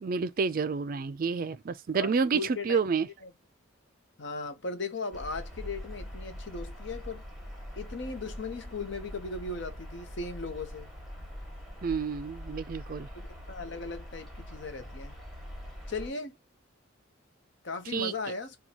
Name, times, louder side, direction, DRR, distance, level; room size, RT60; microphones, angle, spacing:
voice 1, 0.0-3.1 11.8-13.1 17.9-18.1, right 5 dB, 45° right, 0.3 m, -29 dB
voice 2, 2.0-2.8 3.2-3.3 4.2-7.2 7.8-10.9 13.1-15.2 15.9-16.4 17.6-18.6, left 3 dB, 60° left, 0.8 m, -37 dB
sound 1, 5.1-16.1, equal, ahead, 1.2 m, -43 dB
4.3 x 2.3 x 2.9 m
head